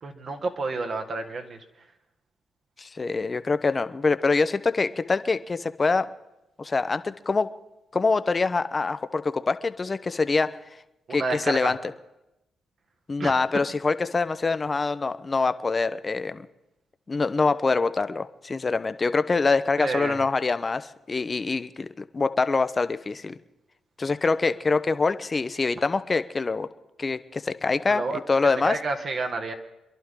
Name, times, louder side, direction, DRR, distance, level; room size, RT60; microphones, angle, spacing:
voice 1, 0.0-1.6 11.1-11.7 13.2-13.7 19.8-20.2 27.9-28.2 28.6-29.5, right 3 dB, 55° right, 5 dB, 1.8 m, -30 dB
voice 2, 2.8-6.1 6.6-7.5 7.9-10.5 11.1-11.8 13.1-16.5 17.1-23.4 24.0-26.7 27.0-28.0 28.3-28.7, left 4 dB, 35° left, 12 dB, 0.8 m, -25 dB
26.0 x 11.0 x 3.8 m, 0.92 s
supercardioid pair, 55°, 0 cm